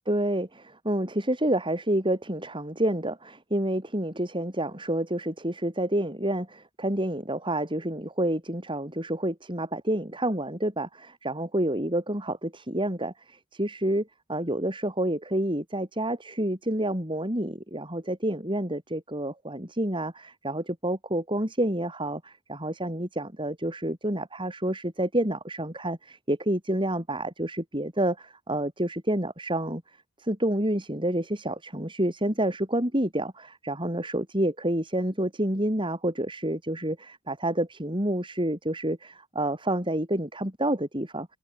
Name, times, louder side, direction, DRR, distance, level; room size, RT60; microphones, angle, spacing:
voice 1, 0.1-29.8 30.2-41.3, right 1 dB, 20° right, 6.9 m, -29 dB
head